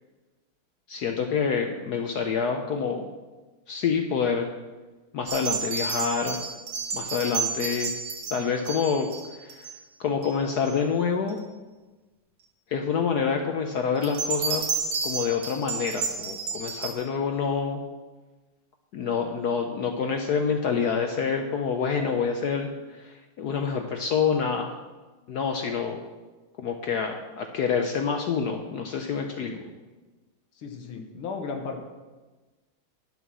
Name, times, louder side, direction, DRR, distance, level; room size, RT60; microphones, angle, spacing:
voice 1, 0.9-3.1 3.7-4.5 5.1-6.4 6.9-7.9 8.3-9.7 10.0-11.4 12.7-17.8 18.9-24.7 25.3-26.0 26.6-29.5, left 6 dB, 65° left, 4 dB, 1.0 m, -27 dB
sound 1, 5.3-9.8 10.2-10.7 11.3-11.4 14.0-16.9, right 5 dB, 60° right, 2.0 m, -31 dB
voice 2, 30.5-31.8, left 5 dB, 85° left, 3 dB, 2.1 m, -35 dB
10.5 x 7.0 x 6.1 m, 1.2 s
omnidirectional pair, 2.3 m